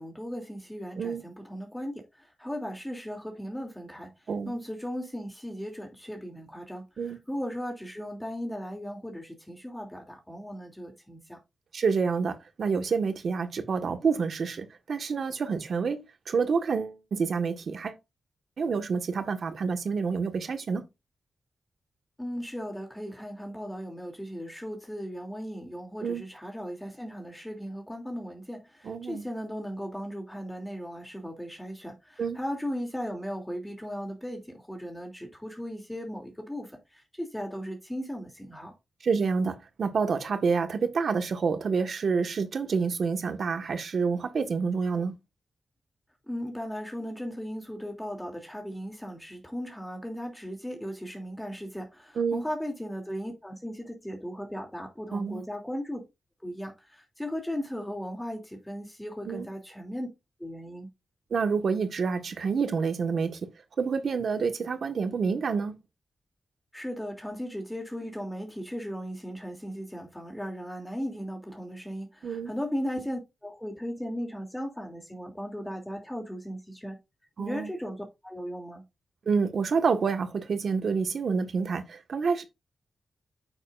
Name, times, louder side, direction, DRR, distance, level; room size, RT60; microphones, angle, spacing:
voice 1, 0.0-4.1 4.4-11.4 22.2-38.7 46.3-56.0 56.4-60.1 60.4-60.9 66.7-77.0 77.4-78.8, equal, 10° left, 2.9 m, -37 dB
voice 2, 4.3-4.6 7.0-7.2 11.7-17.9 18.6-20.8 26.0-26.2 28.8-29.3 32.2-32.4 39.0-45.1 52.2-52.4 55.1-55.4 59.2-59.5 61.3-63.4 63.8-65.8 72.2-72.5 77.4-77.7 79.3-82.4, right 5 dB, 70° right, 1.5 m, -28 dB
9.6 x 6.9 x 2.6 m
cardioid pair, 50°, 0 cm